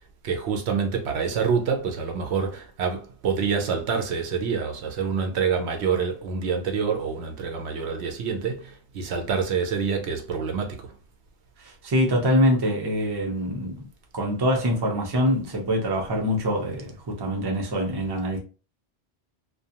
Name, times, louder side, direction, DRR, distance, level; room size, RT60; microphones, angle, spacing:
voice 1, 0.2-10.9, right 6 dB, 75° right, 0.8 m, -27 dB
voice 2, 11.6-13.9 14.1-18.4, equal, 30° right, 0.5 m, -24 dB
2.4 x 2.2 x 2.7 m
omnidirectional pair, 1.2 m